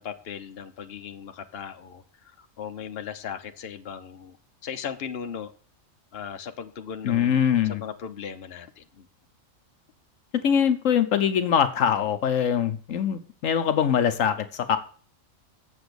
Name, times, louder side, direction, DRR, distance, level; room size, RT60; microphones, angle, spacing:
voice 1, 0.0-2.0 2.4-4.4 4.6-5.5 6.1-9.1, left 7 dB, 50° left, 7 dB, 1.1 m, -37 dB
voice 2, 7.0-7.8 10.3-14.8, left 8 dB, 75° left, 9 dB, 1.2 m, -23 dB
8.0 x 7.1 x 6.8 m, 0.44 s
omnidirectional pair, 1.4 m